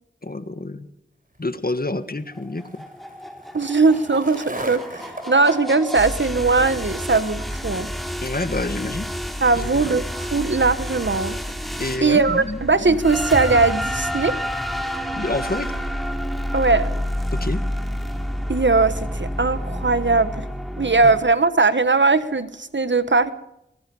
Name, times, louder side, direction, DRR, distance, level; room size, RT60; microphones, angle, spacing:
voice 1, 0.2-0.9 1.4-2.8 8.2-9.1 9.6-9.9 11.8-12.7 15.1-15.7 17.3-17.6 21.0-21.1, left 2 dB, 55° left, 11 dB, 1.7 m, -28 dB
Skateboard, 1.3-11.9, right 1 dB, 45° right, 3.8 m, -41 dB
sound 1, 2.4-21.2, equal, ahead, 3.2 m, -29 dB
voice 2, 3.5-7.9 9.4-11.4 12.0-14.3 16.5-16.9 18.5-20.4 20.8-23.3, right 3 dB, 75° right, 12 dB, 1.4 m, -19 dB
24.5 x 20.5 x 5.5 m, 0.82 s
wide cardioid pair, 45°, 19 cm